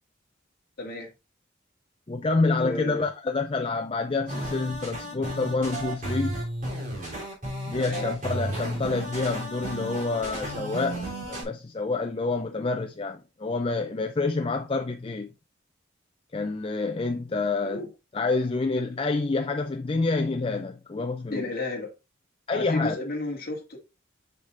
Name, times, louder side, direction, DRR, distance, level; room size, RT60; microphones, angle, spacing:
voice 1, 0.8-1.1 2.4-3.1 7.8-8.1 17.6-17.9 21.3-21.9 22.5-23.8, left 2 dB, 50° left, 2.2 m, -33 dB
voice 2, 2.1-6.4 7.7-11.0 11.3-15.3 16.3-17.9 18.1-21.5 22.5-23.0, left 3 dB, 30° left, 0.4 m, -28 dB
sound 1, 4.3-11.4, right 1 dB, 45° right, 3.5 m, -33 dB
6.6 x 6.5 x 2.6 m
head